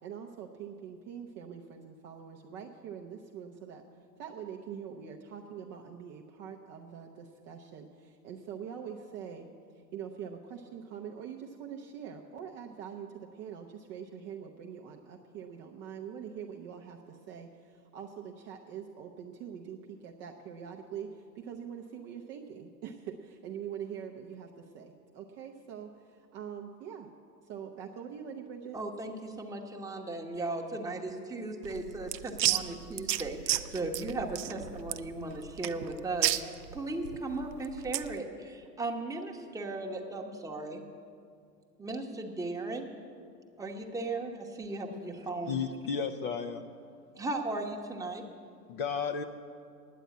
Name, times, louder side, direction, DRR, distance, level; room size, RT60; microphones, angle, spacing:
voice 1, 0.0-3.8 4.2-9.5 9.9-27.1 27.4-28.8, right 8 dB, 25° right, 1 dB, 0.5 m, -44 dB
voice 2, 28.7-40.9 41.8-42.9 43.6-45.6 47.2-48.2, right 2 dB, 5° right, 1 dB, 0.9 m, -37 dB
sound 1, 31.6-38.2, right 13 dB, 80° right, 0.7 m, -33 dB
voice 3, 45.5-46.7 48.7-49.2, left 6 dB, 35° left, 7 dB, 0.5 m, -33 dB
9.3 x 9.0 x 8.4 m, 2.4 s
hypercardioid pair, 115°, 49 cm